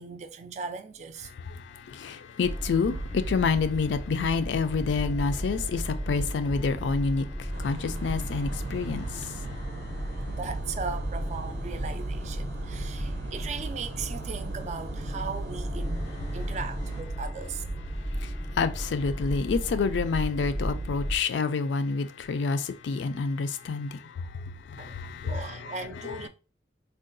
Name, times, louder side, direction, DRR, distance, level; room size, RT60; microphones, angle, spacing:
voice 1, 0.0-1.3 10.3-17.6 24.8-25.0 25.2-26.3, right 5 dB, 40° right, 0.3 m, -38 dB
voice 2, 1.9-7.3 7.6-9.3 18.2-18.3 18.6-24.0 24.7-25.3, left 5 dB, 80° left, 0.3 m, -28 dB
sound 1, 2.4-21.2, right 1 dB, 15° left, 0.5 m, -34 dB
sound 2, 7.5-17.0, right 2 dB, 75° right, 0.6 m, -40 dB
3.6 x 2.3 x 2.5 m
head